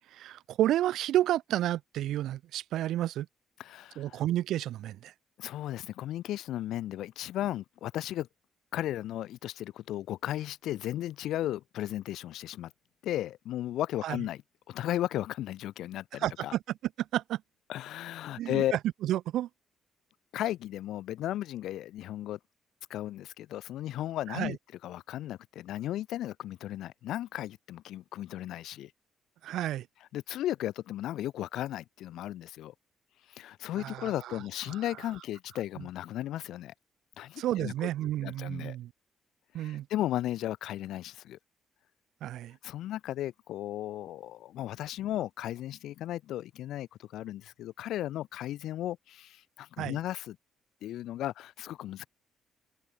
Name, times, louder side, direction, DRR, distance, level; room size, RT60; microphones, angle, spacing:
voice 1, 0.1-3.3 4.0-5.1 14.0-14.2 16.2-16.6 17.0-17.4 18.4-19.5 24.3-24.6 29.4-29.9 33.8-34.4 34.7-34.8 37.4-38.9 39.5-39.9 42.2-42.6 49.8-50.0, right 13 dB, 80° right, 3.4 m, -31 dB
voice 2, 3.6-4.2 5.4-8.3 8.7-12.7 13.0-14.4 14.7-16.5 17.7-18.8 20.3-22.4 22.9-24.6 24.8-28.9 30.1-32.7 33.3-36.7 37.2-37.9 38.2-38.8 39.6-41.4 42.6-50.4 50.8-52.1, left 13 dB, 80° left, 2.2 m, -35 dB
cardioid pair, 90°, 0 cm